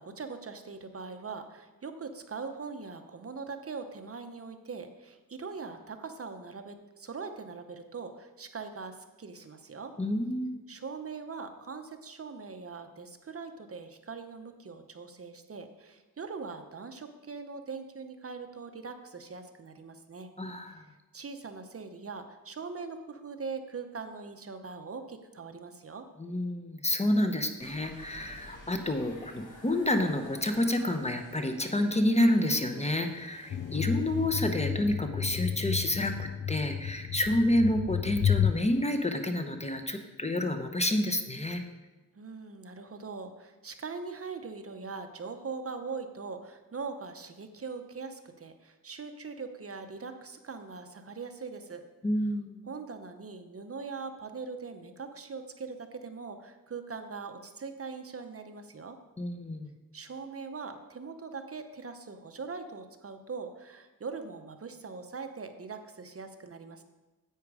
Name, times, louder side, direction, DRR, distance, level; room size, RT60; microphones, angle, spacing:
voice 1, 0.0-9.9 10.7-20.3 20.7-20.9 21.1-26.1 42.1-51.8 52.6-59.0 59.9-66.8, right 4 dB, 40° right, 7 dB, 0.8 m, -41 dB
voice 2, 10.0-10.7 20.4-20.9 26.2-41.6 52.0-52.6 59.2-59.7, left 1 dB, 20° left, 6 dB, 0.8 m, -29 dB
sound 1, 27.6-34.3, left 1 dB, 60° left, 2.2 m, -51 dB
sound 2, 33.5-38.5, left 9 dB, 40° left, 0.4 m, -31 dB
10.0 x 8.2 x 4.8 m, 1.1 s
wide cardioid pair, 120°, 35 cm